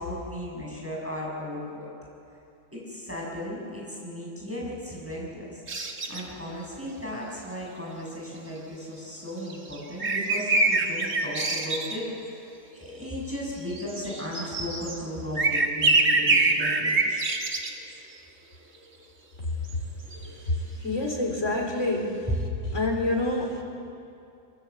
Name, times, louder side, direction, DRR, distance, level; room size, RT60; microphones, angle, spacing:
voice 1, 0.0-1.9 2.7-5.6 6.1-12.4 12.7-17.3, left 1 dB, 10° right, -4 dB, 6.7 m, -36 dB
sound 1, 5.7-6.2 9.5-12.0 13.7-15.0 15.4-17.7 19.7-19.8 20.1-20.3, right 3 dB, 55° right, 2.4 m, -25 dB
voice 2, 20.4-22.3 22.7-23.6, left 2 dB, 50° left, 1 dB, 4.5 m, -27 dB
24.5 x 24.0 x 8.3 m, 2.6 s
omnidirectional pair, 1.6 m